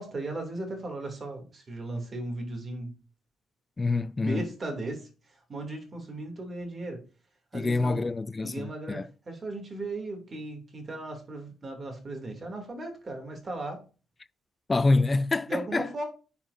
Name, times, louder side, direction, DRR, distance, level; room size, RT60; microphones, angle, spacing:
voice 1, 0.0-3.0 4.2-7.0 7.5-8.0 8.4-13.8 15.5-16.0, right 2 dB, 40° right, 2.8 m, -37 dB
voice 2, 3.8-4.5 7.5-9.1 14.7-15.9, left 3 dB, 25° left, 0.3 m, -26 dB
10.0 x 5.6 x 2.7 m
cardioid pair, 90°, 0 cm